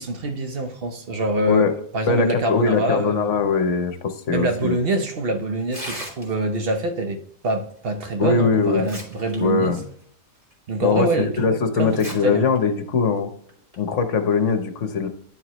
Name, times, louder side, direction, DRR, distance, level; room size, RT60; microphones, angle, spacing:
voice 1, 0.0-1.7 1.9-3.3 4.3-9.8 10.7-11.5 11.8-12.0 12.2-12.5, right 1 dB, 50° right, 1.0 m, -25 dB
voice 2, 2.0-4.8 8.2-8.9 9.4-9.8 10.8-13.3 13.8-15.1, left 5 dB, 65° left, 1.2 m, -21 dB
Tearing, 5.6-6.6 8.0-8.1 8.6-9.4 9.7-9.8 10.5-10.6 11.8-12.1 12.5-12.6 13.5-13.7, equal, 25° right, 2.0 m, -36 dB
10.5 x 4.6 x 3.0 m
omnidirectional pair, 1.4 m